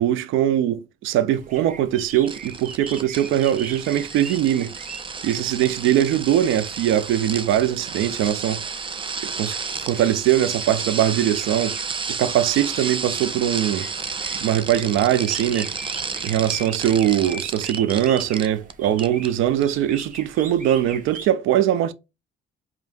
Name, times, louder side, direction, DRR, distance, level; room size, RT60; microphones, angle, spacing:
voice 1, 0.0-4.7 5.2-8.6 9.4-11.8 12.1-13.9 14.4-15.7 16.2-21.9, right 11 dB, 90° right, 0.4 m, -21 dB
sound 1, 1.3-21.3, right 4 dB, 40° right, 1.0 m, -41 dB
sound 2, 2.3-18.7 19.0-19.3 19.6-19.7, right 5 dB, 25° right, 0.5 m, -32 dB
4.8 x 2.8 x 2.5 m
cardioid pair, 90°, 20 cm